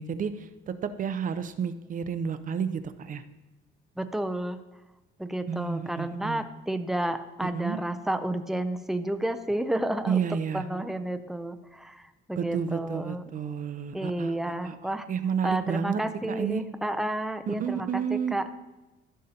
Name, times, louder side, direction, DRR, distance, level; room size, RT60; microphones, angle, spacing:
voice 1, 0.0-3.2 5.5-6.4 7.4-7.8 10.1-10.6 12.4-14.3 14.6-16.0 16.4-16.6 17.5-18.4, right 7 dB, 40° right, 11 dB, 0.6 m, -31 dB
voice 2, 4.0-4.6 5.2-10.2 10.5-13.2 13.9-15.1 15.4-18.4, right 1 dB, ahead, 8 dB, 0.4 m, -31 dB
15.0 x 6.5 x 2.8 m, 1.1 s
cardioid pair, 135°, 21 cm